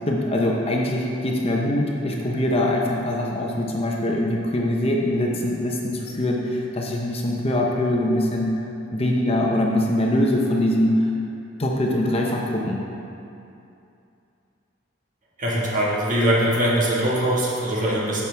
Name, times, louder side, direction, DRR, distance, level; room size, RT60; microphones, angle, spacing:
voice 1, 0.1-8.5 8.9-11.1 11.6-12.8, left 1 dB, 30° left, -1 dB, 0.8 m, -23 dB
voice 2, 15.4-18.2, right 1 dB, 45° right, -5 dB, 1.7 m, -22 dB
10.5 x 7.2 x 3.4 m, 2.7 s
head